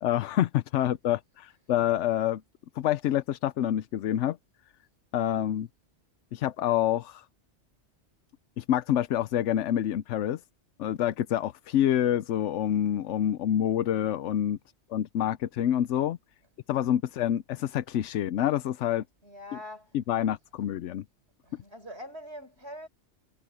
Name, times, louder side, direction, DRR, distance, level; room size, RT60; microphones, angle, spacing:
voice 1, 0.0-2.4 2.8-4.4 5.1-5.7 6.3-7.2 8.6-10.4 10.8-14.6 14.9-16.2 16.7-19.0 20.1-21.0, left 11 dB, 80° left, 0.9 m, -27 dB
voice 2, 19.2-20.0 21.4-22.9, left 1 dB, 60° right, 6.1 m, -43 dB
omnidirectional pair, 1.2 m